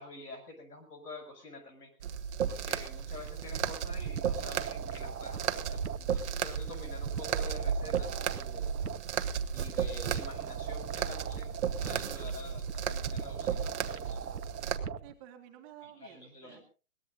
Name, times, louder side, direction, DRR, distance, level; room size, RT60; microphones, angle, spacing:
voice 1, 0.0-1.9 2.5-8.7 9.5-14.2 15.8-16.6, left 2 dB, 80° left, 8 dB, 6.7 m, -48 dB
sound 1, 2.0-14.8, right 8 dB, 45° right, 1.3 m, -35 dB
sound 2, 3.1-15.1, right 7 dB, 80° right, 1.2 m, -40 dB
voice 2, 15.0-16.6, right 11 dB, 20° right, 3 dB, 2.0 m, -52 dB
22.0 x 18.5 x 2.6 m, 0.35 s
hypercardioid pair, 150°, 46 cm